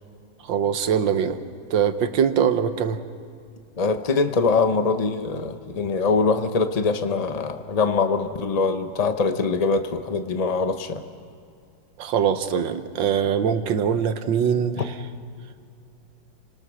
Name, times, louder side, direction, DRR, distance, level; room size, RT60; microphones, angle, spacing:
voice 1, 0.5-1.4 1.7-3.0 12.0-14.8, right 8 dB, 70° right, 10 dB, 1.6 m, -22 dB
voice 2, 3.8-11.0 14.8-14.9, left 4 dB, 80° left, 8 dB, 0.3 m, -23 dB
30.0 x 19.5 x 6.2 m, 2.3 s
omnidirectional pair, 2.2 m